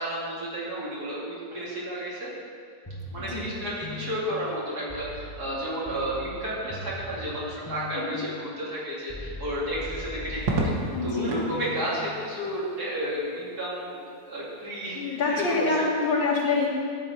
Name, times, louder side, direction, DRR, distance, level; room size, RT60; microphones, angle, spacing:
voice 1, 0.0-2.3 3.1-10.8 11.0-15.8, right 1 dB, 55° right, -7 dB, 3.2 m, -32 dB
sound 1, 2.9-12.6, left 2 dB, 20° left, 0.7 m, -41 dB
voice 2, 3.2-3.5 7.9-8.3 10.9-11.4 14.9-16.7, left 3 dB, 80° left, -4 dB, 2.7 m, -26 dB
Crackle, 10.4-11.5 13.1-13.7, right 2 dB, 90° right, 2.1 m, -30 dB
12.5 x 8.4 x 4.5 m, 2.3 s
omnidirectional pair, 2.0 m